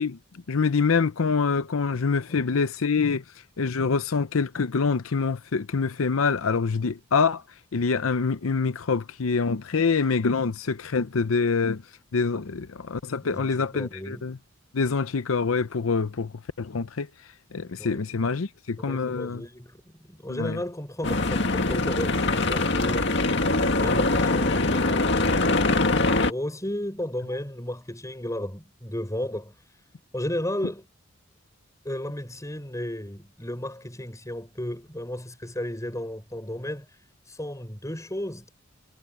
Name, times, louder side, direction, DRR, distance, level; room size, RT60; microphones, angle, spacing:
voice 1, 0.0-3.2 3.6-7.4 7.7-11.8 12.1-14.4 14.7-16.3 16.6-17.1 17.5-19.4 20.3-20.6, left 5 dB, 90° left, 0.7 m, -25 dB
voice 2, 13.2-14.2 17.8-18.0 18.8-23.1 23.6-29.5 30.1-30.9 31.8-36.9 37.3-38.5, left 1 dB, 15° left, 5.5 m, -34 dB
sound 1, 21.0-26.3, left 2 dB, 60° left, 2.0 m, -23 dB
head